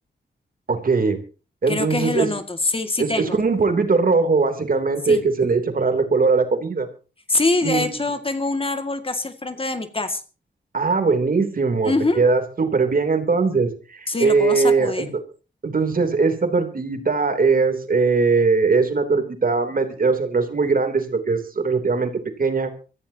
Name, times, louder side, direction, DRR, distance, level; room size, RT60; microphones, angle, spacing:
voice 1, 0.7-1.2 1.6-2.3 3.0-6.9 7.6-7.9 10.7-15.1 15.6-22.1 22.4-22.7, right 4 dB, 50° right, 7 dB, 3.2 m, -20 dB
voice 2, 1.7-3.4 5.1-5.2 7.3-10.2 11.8-12.2 14.1-15.1, left 2 dB, 30° left, 8 dB, 2.1 m, -24 dB
25.0 x 14.5 x 2.9 m, 0.35 s
cardioid pair, 70°, 18 cm